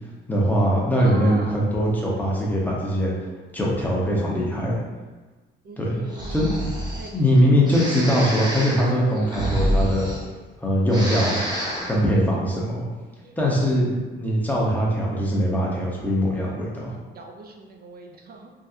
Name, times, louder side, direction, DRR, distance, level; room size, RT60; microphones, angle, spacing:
voice 1, 0.3-3.1 3.5-4.7 5.8-6.0 6.3-6.5 7.1-10.1 10.6-11.4 11.9-12.8 13.4-16.9, equal, 10° left, -4 dB, 0.9 m, -21 dB
voice 2, 1.0-1.6 5.6-6.5 6.9-7.1 7.4-7.5 12.3-12.6 13.2-13.4 17.1-18.5, right 3 dB, 50° right, 2 dB, 0.5 m, -39 dB
Breathing, 6.1-7.1 7.7-10.6 10.8-12.0, equal, 20° right, 1.0 m, -28 dB
3.6 x 2.3 x 2.7 m, 1.3 s
cardioid pair, 90°, 20 cm